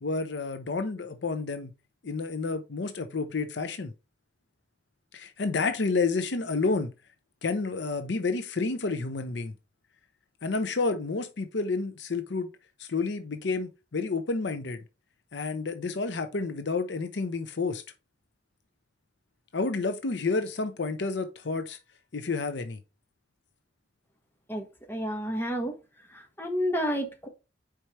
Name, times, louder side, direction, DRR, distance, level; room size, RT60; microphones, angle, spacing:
voice 1, 0.0-1.7 2.0-3.9 5.1-6.9 7.4-9.5 10.4-12.5 12.8-14.8 15.3-17.8 19.5-21.8 22.1-22.8, left 3 dB, 70° left, 0.7 m, -30 dB
voice 2, 24.5-25.7 26.4-27.3, equal, 10° left, 1.4 m, -30 dB
4.8 x 4.5 x 4.3 m
head